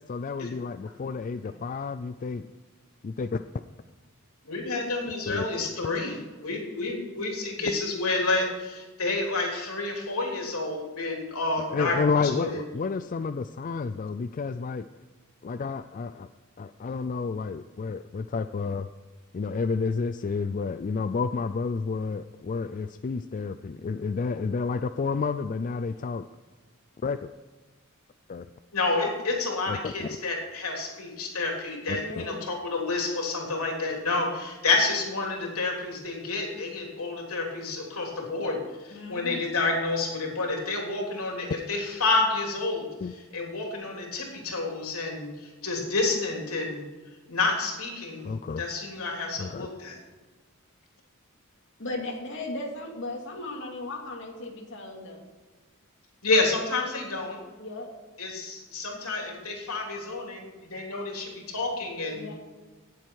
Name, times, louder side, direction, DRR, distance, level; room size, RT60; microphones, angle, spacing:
voice 1, 0.0-2.4 3.0-3.4 5.3-5.5 11.7-14.8 15.4-16.3 16.6-18.9 19.3-26.2 27.0-27.3 28.3-28.5 29.7-30.1 31.9-32.2 43.0-43.1 48.2-48.6 49.4-49.7, left 4 dB, 40° left, 10 dB, 0.3 m, -30 dB
voice 2, 4.4-12.6 28.7-46.8 47.3-50.0 56.2-57.4 58.2-62.3, left 3 dB, 85° left, 0 dB, 3.3 m, -29 dB
voice 3, 32.0-32.4 38.9-39.5 51.8-55.2 57.6-57.9 62.1-62.3, left 2 dB, 60° left, 0 dB, 2.7 m, -37 dB
18.0 x 7.6 x 4.7 m, 1.3 s
head